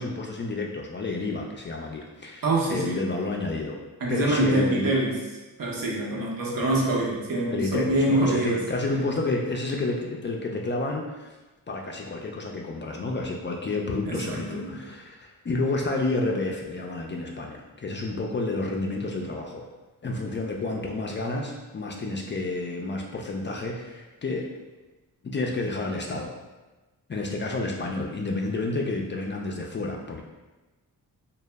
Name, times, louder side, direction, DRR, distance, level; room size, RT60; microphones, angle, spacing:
voice 1, 0.0-3.8 4.1-4.9 7.5-11.4 11.7-19.7 20.0-24.5 25.2-26.3 27.1-30.2, left 2 dB, 30° left, 0 dB, 0.4 m, -30 dB
voice 2, 2.4-3.0 4.0-5.2 5.6-8.6 14.0-14.8, right 1 dB, 65° right, -3 dB, 0.8 m, -25 dB
2.0 x 2.0 x 3.3 m, 1.1 s
cardioid pair, 50°, 37 cm